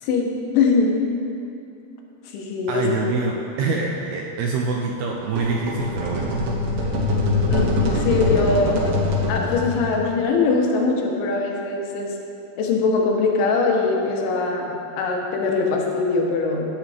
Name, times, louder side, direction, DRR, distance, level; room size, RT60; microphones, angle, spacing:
voice 1, 0.0-1.0 2.3-2.8 7.5-9.0 9.3-12.1 12.6-16.7, left 4 dB, 85° left, 0 dB, 3.6 m, -22 dB
voice 2, 2.7-6.4, right 4 dB, 80° right, 0 dB, 2.3 m, -25 dB
sound 1, 5.2-10.1, left 2 dB, 65° right, 2.4 m, -23 dB
15.5 x 8.8 x 3.5 m, 2.9 s
omnidirectional pair, 5.2 m